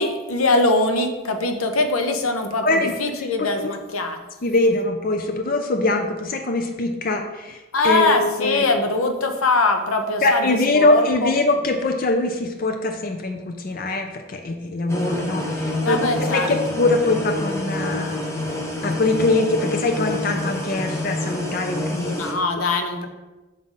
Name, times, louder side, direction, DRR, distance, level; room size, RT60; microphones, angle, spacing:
voice 1, 0.0-4.2 7.7-11.3 15.8-16.5 22.0-23.1, left 2 dB, 90° left, 6 dB, 0.8 m, -22 dB
voice 2, 3.4-3.7 4.4-7.6 7.8-8.6 10.2-18.2 18.8-22.2, left 2 dB, 45° left, 5 dB, 0.5 m, -22 dB
sound 1, 14.9-22.3, left 1 dB, 15° left, 0.7 m, -27 dB
6.5 x 3.7 x 5.5 m, 1.1 s
head